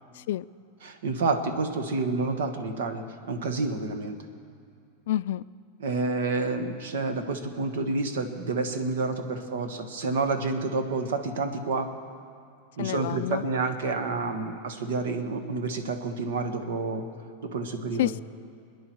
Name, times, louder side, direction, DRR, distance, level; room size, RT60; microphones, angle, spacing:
voice 1, 0.8-4.2 5.8-11.9 12.8-17.1 17.5-18.1, right 3 dB, 85° right, 7 dB, 1.5 m, -29 dB
voice 2, 5.1-5.4 12.8-13.4 18.0-18.2, left 13 dB, 70° left, 17 dB, 0.3 m, -28 dB
27.0 x 10.0 x 4.6 m, 2.3 s
supercardioid pair, 150°, 0 cm